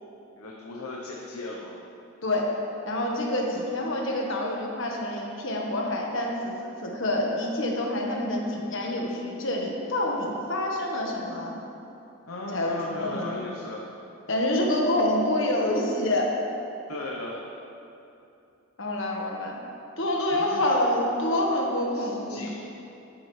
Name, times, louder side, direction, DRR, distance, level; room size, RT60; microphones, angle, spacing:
voice 1, 0.4-1.7 12.3-13.8 16.9-17.4 20.3-20.9 21.9-22.5, left 2 dB, 80° left, -3 dB, 1.0 m, -37 dB
voice 2, 2.2-2.5 2.8-11.6 12.5-13.5 14.3-16.3 18.8-19.6 20.0-22.5, left 1 dB, 55° left, -1 dB, 1.5 m, -27 dB
12.5 x 10.0 x 3.3 m, 2.8 s
head